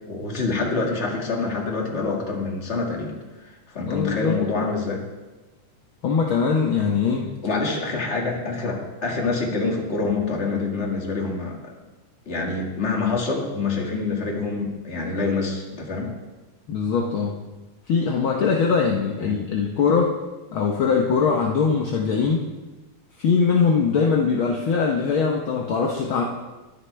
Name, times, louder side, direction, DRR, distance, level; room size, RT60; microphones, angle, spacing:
voice 1, 0.1-3.1 3.4-5.0 7.4-11.7 12.3-16.1 19.2-19.4, left 3 dB, 25° left, 0 dB, 1.8 m, -26 dB
voice 2, 3.9-4.4 6.0-7.3 16.7-17.4 17.9-20.1 20.5-22.5 23.2-26.2, left 5 dB, 65° left, 0 dB, 1.3 m, -21 dB
21.5 x 9.9 x 3.4 m, 1.1 s
omnidirectional pair, 3.5 m